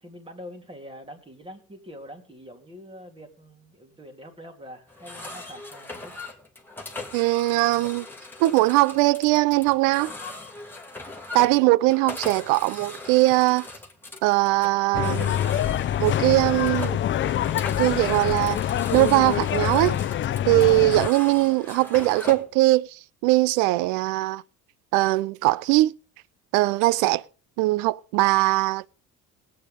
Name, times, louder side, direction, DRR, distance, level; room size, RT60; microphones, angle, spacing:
voice 1, 0.0-6.1, equal, 15° right, 2.8 m, -44 dB
sound 1, 4.9-22.5, left 2 dB, 5° left, 2.0 m, -40 dB
voice 2, 7.1-8.1 8.4-10.1 11.3-13.7 14.2-15.3 16.0-17.0 17.8-18.6 18.9-20.0 20.5-24.4 24.9-25.9 26.5-27.2 27.6-28.9, right 19 dB, 85° right, 0.5 m, -21 dB
sound 2, 14.9-21.1, left 11 dB, 40° left, 0.5 m, -25 dB
18.5 x 8.7 x 3.6 m
cardioid pair, 105°, 31 cm